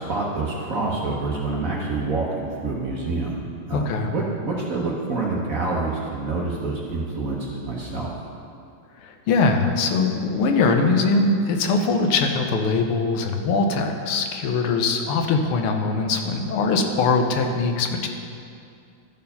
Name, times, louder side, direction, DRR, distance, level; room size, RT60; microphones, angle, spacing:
voice 1, 0.0-3.4 3.7-8.1, right 3 dB, 55° right, -3 dB, 1.0 m, -27 dB
voice 2, 3.7-4.1 9.0-18.1, left 4 dB, 85° left, 4 dB, 1.7 m, -22 dB
12.5 x 4.6 x 5.4 m, 2.4 s
omnidirectional pair, 2.4 m